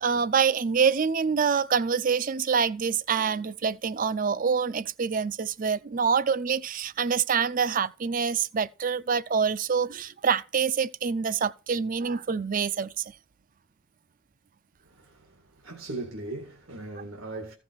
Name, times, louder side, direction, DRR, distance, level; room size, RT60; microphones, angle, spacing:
voice 1, 0.0-13.0, right 6 dB, 40° right, 0.5 m, -26 dB
voice 2, 14.8-17.5, right 2 dB, 90° right, 2.2 m, -39 dB
15.0 x 5.9 x 4.7 m
head